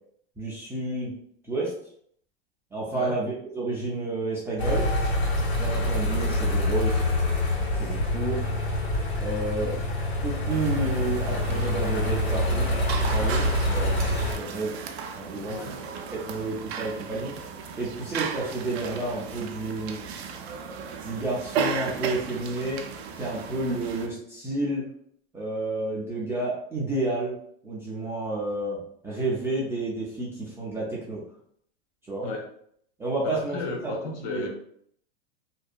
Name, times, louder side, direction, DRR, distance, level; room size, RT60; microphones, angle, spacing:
voice 1, 0.4-1.1 1.5-1.7 2.7-4.8 5.6-7.0 7.8-8.4 9.2-9.8 10.2-12.7 13.1-14.1 14.4-14.8 15.1-15.6 16.3-17.3 17.8-20.1 21.0-22.8 23.2-24.9 25.3-27.3 27.6-31.2 32.1-32.3 33.0-34.5, right 2 dB, 10° right, -7 dB, 0.4 m, -30 dB
sound 1, 4.6-14.4, left 1 dB, 85° left, 1.3 m, -26 dB
sound 2, 10.5-24.1, right 6 dB, 85° right, 0.5 m, -35 dB
voice 2, 33.2-34.5, left 3 dB, 50° left, 1 dB, 0.7 m, -34 dB
2.7 x 2.2 x 2.4 m, 0.65 s
supercardioid pair, 130°, 31 cm